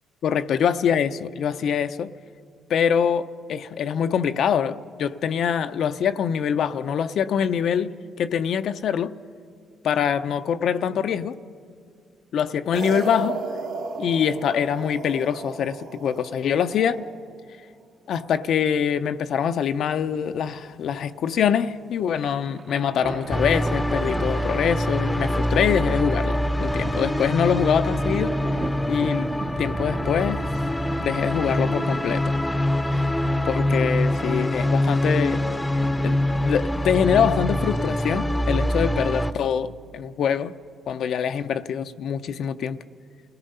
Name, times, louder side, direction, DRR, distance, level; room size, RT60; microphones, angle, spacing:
voice 1, 0.2-2.1 2.7-9.1 9.8-11.4 12.3-13.4 14.0-17.1 18.1-28.4 28.9-29.3 29.6-30.5 31.0-32.3 33.4-35.4 36.0-40.5 40.9-42.8, left 8 dB, 70° left, 0.6 m, -24 dB
sound 1, 12.7-17.2, right 4 dB, 80° right, 3.3 m, -34 dB
sound 2, 19.7-36.5, right 4 dB, 35° right, 1.0 m, -39 dB
sound 3, 23.3-39.3, left 1 dB, 10° left, 0.8 m, -24 dB
28.5 x 17.5 x 5.5 m
cardioid pair, 90°, 0 cm